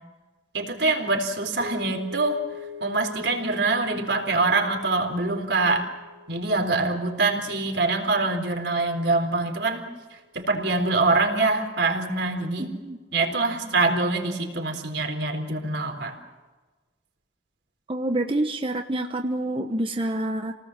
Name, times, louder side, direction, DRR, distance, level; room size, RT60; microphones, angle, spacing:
voice 1, 0.5-2.4 2.8-5.9 6.3-9.8 10.1-12.7 13.1-16.2, right 3 dB, 80° right, 3 dB, 4.1 m, -24 dB
sound 1, 1.6-9.9, left 4 dB, 55° right, 3.8 m, -44 dB
voice 2, 12.6-13.0 17.9-20.5, right 1 dB, 30° right, 5 dB, 1.1 m, -27 dB
28.5 x 19.0 x 7.5 m, 1.3 s
head